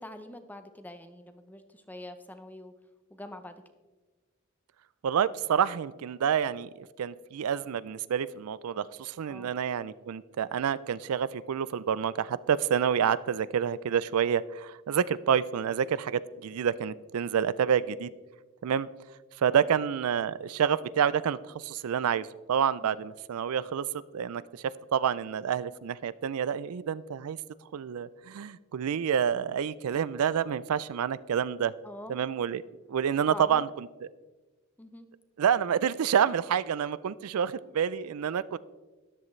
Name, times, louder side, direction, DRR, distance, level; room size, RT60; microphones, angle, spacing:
voice 1, 0.0-2.7 3.1-3.6 9.2-9.5 19.6-19.7 22.8-23.0 31.8-32.2 33.2-33.6 34.8-35.1, left 1 dB, 10° left, 9 dB, 0.6 m, -45 dB
voice 2, 5.0-18.1 18.6-18.9 19.4-23.8 24.1-27.4 27.7-31.7 32.1-32.6 32.9-33.9 35.4-38.6, right 8 dB, 85° right, 18 dB, 0.4 m, -28 dB
13.0 x 10.5 x 3.2 m, 1.2 s
head